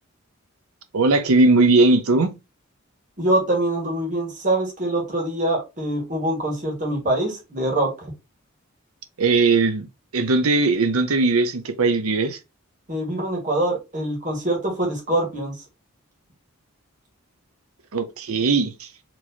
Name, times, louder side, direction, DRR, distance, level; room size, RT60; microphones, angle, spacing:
voice 1, 0.9-2.3 9.2-9.9 10.1-12.4 17.9-18.9, right 3 dB, 75° right, 0.7 m, -19 dB
voice 2, 3.2-8.1 12.9-15.5, right 1 dB, 35° right, 1.6 m, -24 dB
4.5 x 3.0 x 2.7 m
head